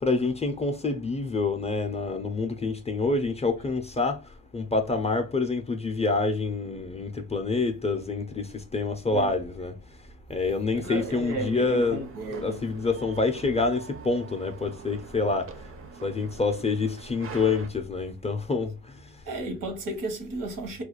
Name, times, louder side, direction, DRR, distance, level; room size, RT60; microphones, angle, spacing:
voice 1, 0.0-4.2 4.5-9.7 10.3-12.0 12.4-15.5 16.0-18.7, left 3 dB, 20° left, 0.4 m, -27 dB
voice 2, 10.7-12.6 19.2-20.8, right 2 dB, 75° right, 0.9 m, -33 dB
sound 1, 10.8-17.7, right 6 dB, 40° right, 0.5 m, -45 dB
2.3 x 2.2 x 2.9 m
cardioid pair, 80°, 34 cm